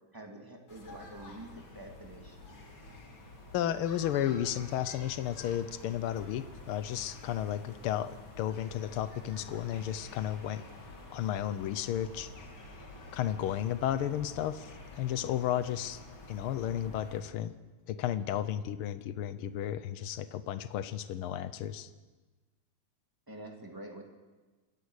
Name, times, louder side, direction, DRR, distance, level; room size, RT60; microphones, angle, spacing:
voice 1, 0.1-2.6 23.3-24.0, right 1 dB, 5° right, 1 dB, 2.3 m, -47 dB
sound 1, 0.7-17.2, left 2 dB, 45° left, 3.1 m, -49 dB
voice 2, 3.5-10.6 11.1-12.3 13.1-16.0 16.3-17.5 17.9-21.9, left 11 dB, 80° left, 13 dB, 1.2 m, -33 dB
27.0 x 15.0 x 6.5 m, 1.3 s
omnidirectional pair, 3.3 m